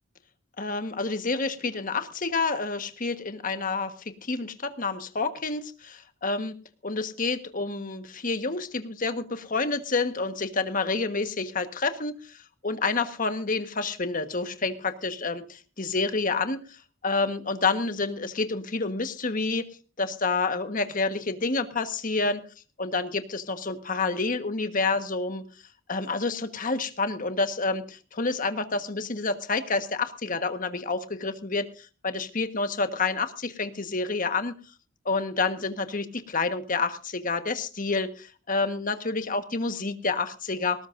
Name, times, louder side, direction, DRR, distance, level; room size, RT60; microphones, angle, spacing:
voice 1, 0.6-6.5 6.8-16.8 17.0-19.7 20.0-22.5 22.8-25.4 25.9-34.5 35.0-40.9, left 3 dB, 45° left, 9 dB, 1.4 m, -29 dB
19.0 x 18.5 x 2.6 m, 0.35 s
head